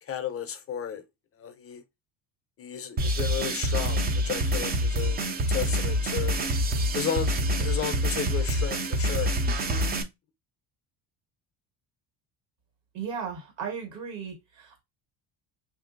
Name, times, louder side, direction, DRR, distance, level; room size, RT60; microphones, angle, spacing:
voice 1, 0.0-1.0 1.4-1.8 2.6-5.2 5.5-6.4 6.9-7.3 7.6-9.3, left 8 dB, 30° left, 0.5 m, -33 dB
sound 1, 3.0-10.0, equal, 25° right, 0.3 m, -26 dB
voice 2, 12.9-14.8, right 6 dB, 75° right, 1.5 m, -36 dB
3.0 x 2.6 x 2.5 m
cardioid pair, 105°, 46 cm